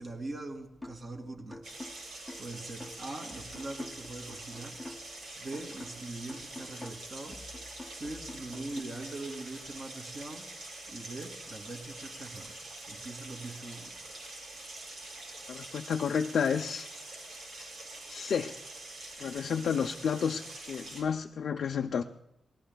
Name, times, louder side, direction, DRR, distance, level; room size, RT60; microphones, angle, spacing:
voice 1, 0.0-1.6 2.4-4.8 5.4-7.4 7.9-10.5 10.9-12.6 12.9-14.0, right 2 dB, 40° right, 2 dB, 2.5 m, -42 dB
sound 1, 0.8-1.1 1.5-5.2 5.5-8.8, left 2 dB, 5° left, 0.9 m, -47 dB
sound 2, 1.6-21.0, right 2 dB, 90° right, 5.0 m, -45 dB
voice 2, 15.5-16.9 17.6-17.7 18.1-18.6 19.2-22.0, left 7 dB, 70° left, 2 dB, 0.5 m, -31 dB
30.0 x 20.0 x 2.3 m, 0.83 s
wide cardioid pair, 140°, 0 cm